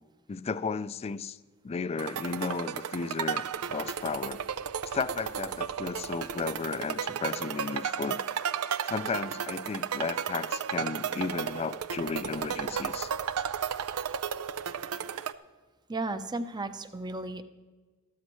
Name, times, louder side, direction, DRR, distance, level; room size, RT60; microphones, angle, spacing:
voice 1, 0.3-1.4 1.6-4.4 4.9-8.2 8.9-13.1, left 5 dB, 30° left, 0.3 m, -34 dB
sound 1, 2.0-15.3, right 7 dB, 85° right, 0.5 m, -34 dB
voice 2, 15.9-17.4, right 2 dB, 20° right, 0.7 m, -34 dB
14.0 x 13.0 x 3.1 m
head